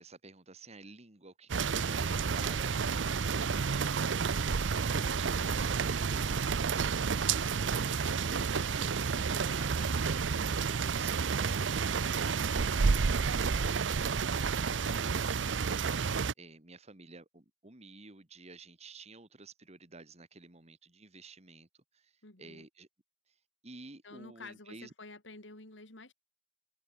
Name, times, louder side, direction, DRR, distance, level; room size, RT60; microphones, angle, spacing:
voice 1, 0.0-6.7 14.1-21.7 21.9-22.9 23.3-23.4 23.6-24.9, right 3 dB, 35° right, 2.2 m, -52 dB
sound 1, 1.5-16.3, right 5 dB, 85° right, 0.7 m, -30 dB
voice 2, 22.2-22.7 24.0-26.1, left 3 dB, 85° left, 4.6 m, -51 dB
head